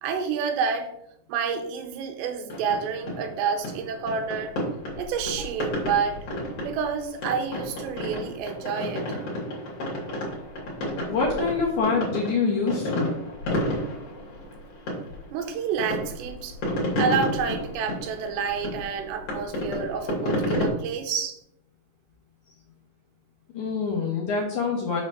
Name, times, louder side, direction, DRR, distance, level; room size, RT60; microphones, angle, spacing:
voice 1, 0.0-0.9 1.3-4.6 5.0-6.2 6.6-9.2 15.3-16.6 17.0-21.4, right 6 dB, 80° right, 5 dB, 3.0 m, -29 dB
sound 1, 2.5-20.7, left 1 dB, 45° left, 3.0 m, -31 dB
voice 2, 11.1-13.1 23.5-25.0, left 4 dB, 65° left, -3 dB, 2.0 m, -25 dB
6.6 x 3.9 x 6.5 m, 0.77 s
omnidirectional pair, 4.9 m